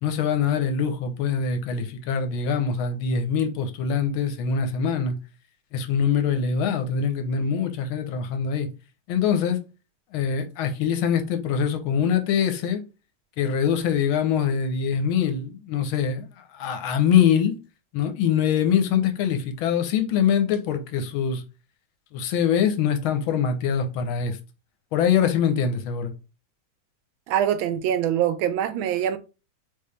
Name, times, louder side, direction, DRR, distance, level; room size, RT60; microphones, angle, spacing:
voice 1, 0.0-5.2 5.7-8.7 9.1-9.6 10.1-12.9 13.4-17.6 17.9-21.4 22.1-24.4 24.9-26.1, left 7 dB, 90° left, 1.6 m, -23 dB
voice 2, 27.3-29.2, right 10 dB, 80° right, 1.4 m, -24 dB
4.0 x 3.7 x 3.2 m
omnidirectional pair, 2.2 m